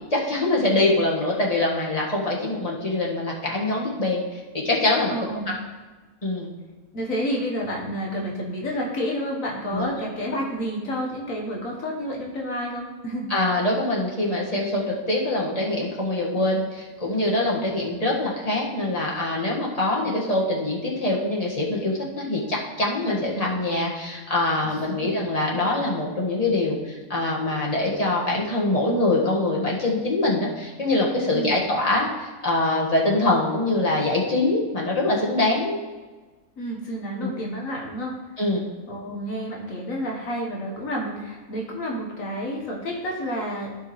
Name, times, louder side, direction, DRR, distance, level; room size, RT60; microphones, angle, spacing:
voice 1, 0.1-5.2 6.2-6.5 9.7-9.9 13.3-35.8 37.2-37.4 38.4-38.6, left 2 dB, 25° left, -4 dB, 1.8 m, -24 dB
voice 2, 5.1-5.6 6.9-13.3 17.6-17.8 24.7-25.1 31.3-31.6 36.6-38.2 38.9-43.7, equal, 65° left, -1 dB, 1.7 m, -30 dB
15.0 x 5.2 x 3.2 m, 1.3 s
omnidirectional pair, 1.5 m